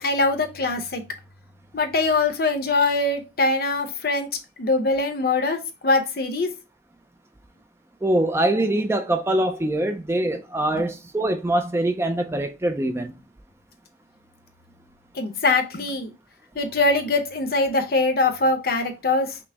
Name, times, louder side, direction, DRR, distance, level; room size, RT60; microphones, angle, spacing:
voice 1, 0.0-1.0 1.7-4.3 4.6-6.5 10.7-10.9 15.1-16.1 16.5-19.4, left 3 dB, 55° left, 0.7 m, -22 dB
voice 2, 8.0-13.1, right 1 dB, 15° right, 0.3 m, -23 dB
5.8 x 2.0 x 3.4 m
head